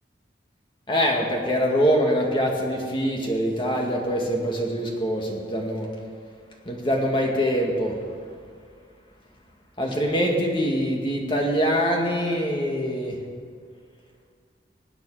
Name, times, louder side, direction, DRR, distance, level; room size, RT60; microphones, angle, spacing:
voice 1, 0.9-5.9 6.7-8.0 9.8-13.2, equal, 25° left, 0 dB, 2.1 m, -24 dB
24.5 x 9.0 x 5.0 m, 2.1 s
head